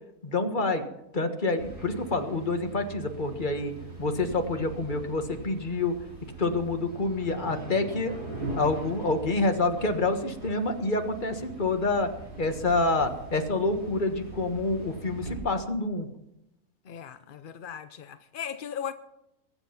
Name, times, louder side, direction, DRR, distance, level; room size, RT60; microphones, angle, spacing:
voice 1, 0.2-0.8 1.1-3.7 4.0-6.0 6.4-8.2 8.6-12.1 12.4-16.1, left 2 dB, 30° left, 1.5 m, -27 dB
sound 1, 1.6-15.4, right 2 dB, 90° right, 5.3 m, -42 dB
voice 2, 16.9-18.9, left 8 dB, 55° left, 0.6 m, -37 dB
22.0 x 7.9 x 5.8 m
omnidirectional pair, 1.6 m